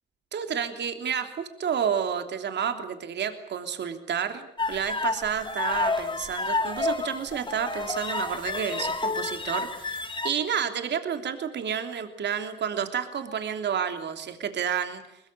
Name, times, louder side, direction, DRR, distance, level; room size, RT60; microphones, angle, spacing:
voice 1, 0.3-15.0, right 7 dB, 60° right, 7 dB, 3.1 m, -30 dB
sound 1, 4.6-10.3, left 3 dB, 25° left, 3.2 m, -30 dB
22.0 x 22.0 x 8.4 m, 0.77 s
cardioid pair, 90°, 20 cm